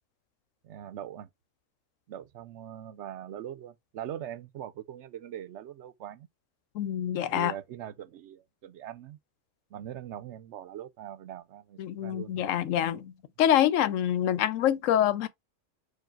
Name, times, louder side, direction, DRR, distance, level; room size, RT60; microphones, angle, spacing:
voice 1, 0.6-1.3 2.1-6.3 7.3-9.2 9.7-12.5, right 10 dB, 70° right, 0.8 m, -41 dB
voice 2, 6.7-7.5 11.8-13.1 13.4-15.3, left 11 dB, 90° left, 1.0 m, -26 dB
4.6 x 2.3 x 4.4 m
omnidirectional pair, 1.3 m